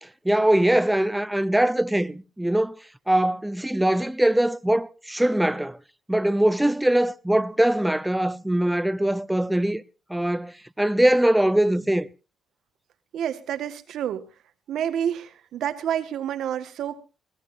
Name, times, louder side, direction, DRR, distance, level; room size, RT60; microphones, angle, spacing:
voice 1, 0.0-2.8 3.1-5.8 6.1-9.8 10.1-12.1, right 1 dB, 5° right, 0.7 m, -22 dB
voice 2, 13.1-14.3 14.7-17.0, right 9 dB, 75° right, 1.6 m, -29 dB
21.5 x 17.5 x 2.7 m
cardioid pair, 90°, 0 cm